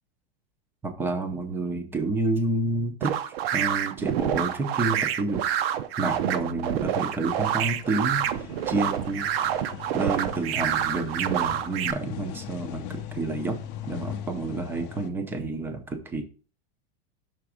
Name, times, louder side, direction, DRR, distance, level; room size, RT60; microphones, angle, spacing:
voice 1, 0.8-3.1 3.5-5.4 6.0-9.5 9.9-13.6 13.8-16.2, right 2 dB, 5° right, 7 dB, 0.5 m, -29 dB
sound 1, 3.0-11.9, right 10 dB, 70° right, 0.6 m, -27 dB
sound 2, 7.2-15.1, left 9 dB, 35° left, 0.6 m, -40 dB
6.0 x 3.4 x 4.9 m, 0.37 s
supercardioid pair, 165°, 31 cm